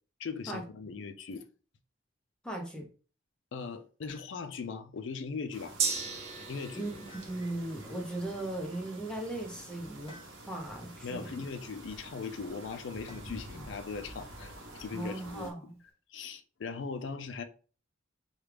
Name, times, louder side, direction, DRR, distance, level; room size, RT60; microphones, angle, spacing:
voice 1, 0.2-1.4 3.5-5.8 6.5-6.9 11.0-14.5 14.8-15.5 16.1-17.4, left 5 dB, 70° left, 0.4 m, -39 dB
voice 2, 2.4-2.9 6.7-10.2 10.5-11.4 13.5-13.6 14.9-15.7, right 1 dB, 5° left, 0.6 m, -38 dB
sound 1, 4.1-4.7 7.1-7.9 10.1-10.8 13.1-13.6 15.3-15.9, left 1 dB, 25° left, 0.9 m, -56 dB
sound 2, 5.5-15.5, right 1 dB, 90° right, 0.9 m, -49 dB
Gong, 5.8-13.6 13.9-14.0, right 5 dB, 35° right, 0.5 m, -41 dB
3.1 x 2.4 x 3.3 m
head